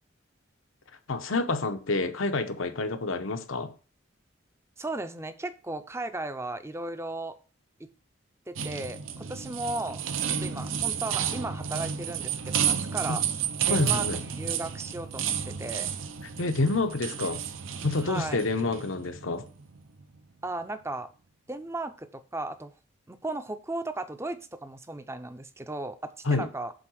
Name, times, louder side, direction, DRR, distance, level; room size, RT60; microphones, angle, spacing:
voice 1, 1.1-3.7 13.1-13.2 13.7-14.2 16.4-17.4 17.8-19.4 26.2-26.5, left 3 dB, 80° left, 0.9 m, -28 dB
voice 2, 4.8-7.4 7.8-7.9 8.5-13.2 13.7-15.9 18.0-18.4 20.4-21.1 21.5-22.7 23.1-26.7, right 2 dB, 15° right, 0.5 m, -36 dB
sound 1, 8.6-20.2, right 8 dB, 80° right, 0.7 m, -31 dB
7.7 x 3.9 x 6.2 m
head